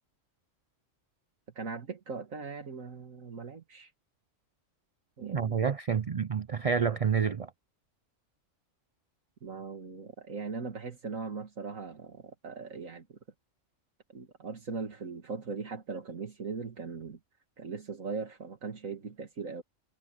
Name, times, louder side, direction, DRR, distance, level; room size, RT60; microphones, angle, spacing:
voice 1, 1.6-3.9 5.2-5.6 9.4-13.2 14.1-17.2 17.6-19.6, right 4 dB, 80° right, 2.4 m, -39 dB
voice 2, 5.2-7.5, right 6 dB, 55° right, 0.4 m, -29 dB
omnidirectional pair, 1.4 m